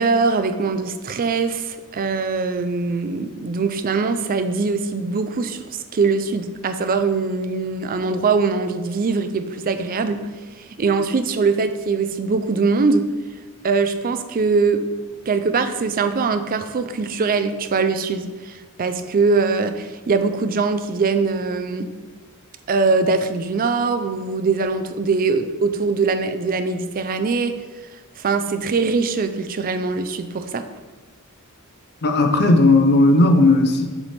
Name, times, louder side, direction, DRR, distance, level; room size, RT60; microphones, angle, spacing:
voice 1, 0.0-10.2 10.6-13.0 13.6-14.8 15.3-21.9 22.7-27.5 28.2-30.7, right 4 dB, 40° right, 9 dB, 0.4 m, -22 dB
voice 2, 32.0-33.9, left 2 dB, 50° left, 5 dB, 0.5 m, -15 dB
7.1 x 3.4 x 4.1 m, 1.3 s
head